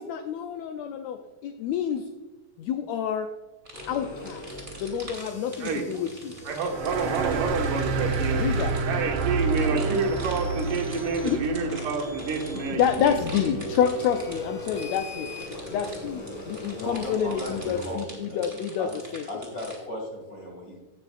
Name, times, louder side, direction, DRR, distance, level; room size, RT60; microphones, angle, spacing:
voice 1, 0.0-2.1 2.6-3.3 3.9-4.5 4.8-6.3 8.4-8.7 11.2-11.4 12.7-15.3 15.7-19.3, left 8 dB, 80° left, 6 dB, 1.7 m, -28 dB
sound 1, 3.7-18.0, left 1 dB, 60° left, 3.6 m, -39 dB
sound 2, 3.7-19.8, right 1 dB, 20° right, 3.1 m, -45 dB
voice 2, 6.4-8.4 8.9-13.2, right 4 dB, 90° right, 1 dB, 3.0 m, -28 dB
sound 3, 6.7-13.8, right 4 dB, 70° right, 1.2 m, -30 dB
voice 3, 16.8-19.0 19.3-20.8, left 1 dB, 30° left, -2 dB, 2.2 m, -37 dB
18.0 x 6.7 x 2.4 m, 1.2 s
omnidirectional pair, 3.6 m